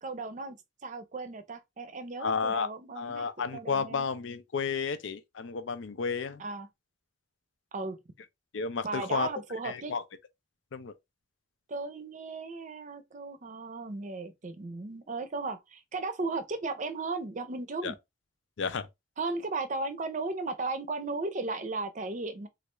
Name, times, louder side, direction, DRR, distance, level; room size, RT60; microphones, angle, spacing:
voice 1, 0.0-4.0 6.4-6.7 7.7-8.0 8.8-9.9 11.7-17.9 19.2-22.5, right 3 dB, 40° right, 0.5 m, -36 dB
voice 2, 2.2-2.7 3.0-6.4 8.5-9.3 9.6-10.0 10.7-10.9 17.8-17.9 18.6-18.9, left 5 dB, 80° left, 0.5 m, -32 dB
3.2 x 2.4 x 3.0 m
head